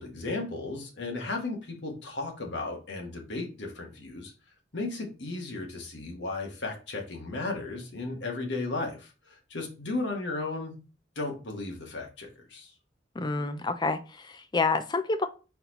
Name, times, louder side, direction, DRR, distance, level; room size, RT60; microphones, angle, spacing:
voice 1, 0.0-4.3 4.7-10.7 11.1-12.7, left 2 dB, 70° left, 1.3 m, -35 dB
voice 2, 13.2-15.3, left 3 dB, 25° left, 0.4 m, -28 dB
4.2 x 4.0 x 2.9 m
head